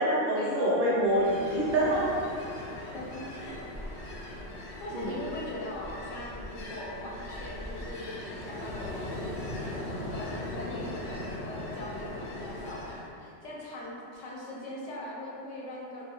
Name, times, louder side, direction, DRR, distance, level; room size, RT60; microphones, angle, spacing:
voice 1, 0.0-2.1 4.9-5.1, right 1 dB, 65° right, -7 dB, 0.7 m, -26 dB
Ocean, 0.9-13.1, left 1 dB, 55° left, 0.6 m, -39 dB
voice 2, 2.9-3.6 4.8-16.0, left 1 dB, 75° left, -4 dB, 0.9 m, -41 dB
2.4 x 2.2 x 2.9 m, 2.6 s
omnidirectional pair, 1.3 m